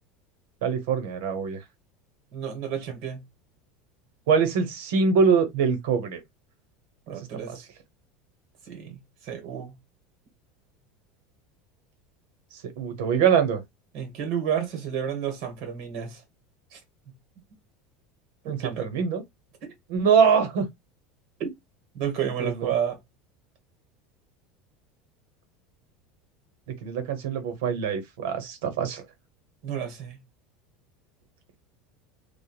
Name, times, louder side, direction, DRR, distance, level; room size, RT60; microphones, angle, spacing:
voice 1, 0.6-1.6 4.3-6.2 12.8-13.6 18.4-19.2 19.9-20.7 22.4-22.7 26.8-29.0, right 6 dB, 80° right, 1.0 m, -23 dB
voice 2, 2.3-3.2 7.1-7.7 8.6-9.8 13.9-16.2 16.7-16.8 17.1-17.2 18.4-18.9 19.6-19.7 21.4-21.5 21.9-23.0 29.6-30.2, right 8 dB, 55° right, 1.3 m, -31 dB
3.1 x 2.3 x 2.3 m
supercardioid pair, 155°, 0 cm